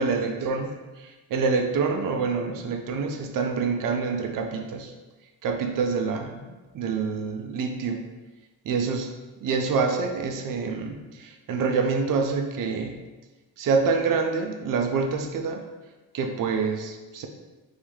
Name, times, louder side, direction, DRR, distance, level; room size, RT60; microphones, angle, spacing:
voice 1, 0.0-4.9 5.4-8.0 8.6-9.1 9.4-12.9 13.6-15.6 16.1-17.3, right 4 dB, 55° right, 4 dB, 0.6 m, -26 dB
3.9 x 2.1 x 3.2 m, 1.2 s
supercardioid pair, 45°, 41 cm